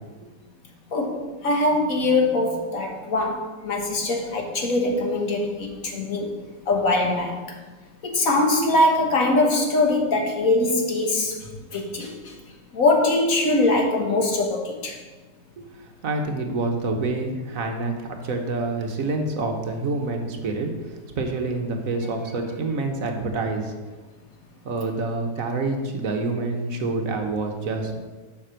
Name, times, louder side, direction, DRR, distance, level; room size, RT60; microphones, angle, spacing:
voice 1, 0.9-6.3 6.7-7.4 8.0-11.4 11.7-12.3 12.7-14.9, left 2 dB, 55° left, 1 dB, 1.6 m, -22 dB
voice 2, 15.6-23.7 24.6-28.0, right 3 dB, 55° right, 4 dB, 1.3 m, -27 dB
7.3 x 5.9 x 6.2 m, 1.3 s
omnidirectional pair, 1.8 m